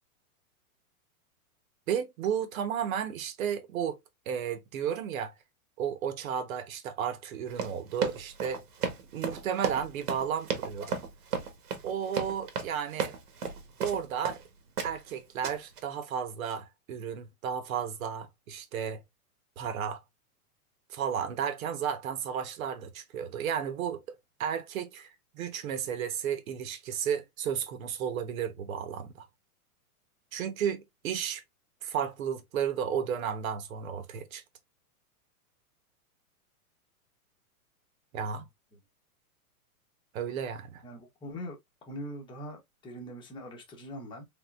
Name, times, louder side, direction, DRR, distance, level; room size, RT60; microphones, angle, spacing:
voice 1, 1.9-4.0 4.3-5.3 5.8-8.6 9.1-10.9 11.8-13.1 13.8-14.4 14.8-19.0 19.6-20.0 20.9-24.0 24.4-25.1 25.3-29.3 30.3-31.4 31.8-34.4 38.1-38.4 40.1-40.8, right 8 dB, 65° right, 1.3 m, -33 dB
Run, 7.5-14.4 14.8-15.1 15.4-15.8, right 6 dB, 90° right, 1.6 m, -34 dB
voice 2, 40.8-41.6 41.9-44.3, equal, 10° left, 1.1 m, -42 dB
3.8 x 3.7 x 2.5 m
hypercardioid pair, 150°, 44 cm